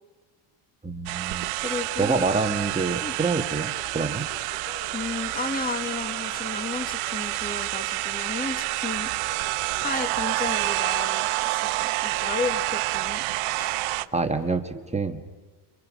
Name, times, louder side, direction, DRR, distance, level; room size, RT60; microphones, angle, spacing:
voice 1, 0.8-4.3 14.1-15.2, right 3 dB, 15° right, 5 dB, 1.8 m, -27 dB
sound 1, 1.1-14.1, right 20 dB, 80° right, 1.0 m, -28 dB
sound 2, 1.5-14.6, left 4 dB, 65° left, 6.1 m, -48 dB
voice 2, 1.6-2.3 3.0-3.2 4.9-9.1 9.8-13.2 13.5-13.8, left 4 dB, 15° left, 8 dB, 1.9 m, -33 dB
29.5 x 28.0 x 6.4 m, 1.3 s
cardioid pair, 120°, 50 cm